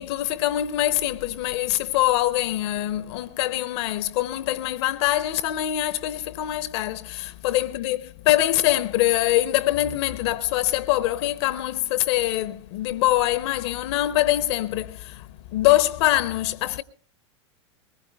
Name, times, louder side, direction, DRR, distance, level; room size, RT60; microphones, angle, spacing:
voice 1, 0.0-15.3 15.5-16.8, left 15 dB, 60° left, 0.6 m, -24 dB
22.0 x 20.5 x 2.2 m
hypercardioid pair, 90°, 16 cm